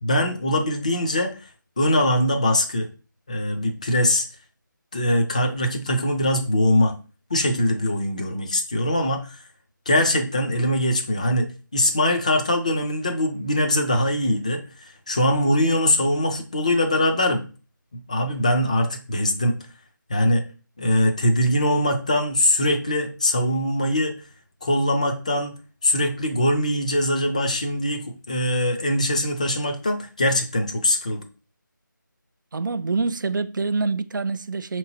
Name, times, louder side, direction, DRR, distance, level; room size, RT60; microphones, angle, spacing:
voice 1, 0.0-1.3 1.8-2.9 3.3-4.3 4.9-6.9 7.3-9.4 9.9-17.5 17.9-19.6 20.1-20.4 20.8-24.1 24.6-25.6 25.8-31.2, left 1 dB, 20° left, 0.4 m, -22 dB
voice 2, 32.5-34.8, right 4 dB, 70° right, 0.4 m, -26 dB
5.3 x 3.0 x 2.7 m
figure-of-eight pair, 165°, 11 cm